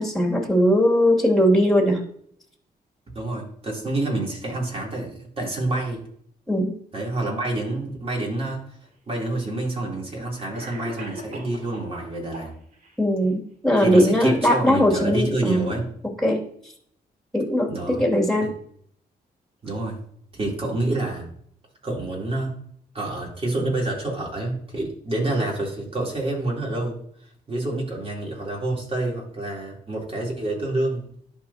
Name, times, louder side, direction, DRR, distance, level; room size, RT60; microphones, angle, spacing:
voice 1, 0.0-2.1 6.5-6.7 13.0-15.7 16.2-16.7 17.3-18.5, equal, 5° left, 0 dB, 2.7 m, -20 dB
voice 2, 3.1-6.0 6.9-8.6 9.1-12.5 13.8-15.9 17.7-18.0 18.4-18.5 19.6-20.0 20.3-21.3 21.8-22.6 22.9-27.0 27.5-31.0, right 2 dB, 35° right, -2 dB, 3.5 m, -27 dB
Cough, 8.8-8.9 9.9-10.0 10.5-12.0 12.3-13.0, right 1 dB, 50° right, 2.7 m, -39 dB
11.5 x 4.7 x 2.9 m, 0.64 s
cardioid pair, 70°, 17 cm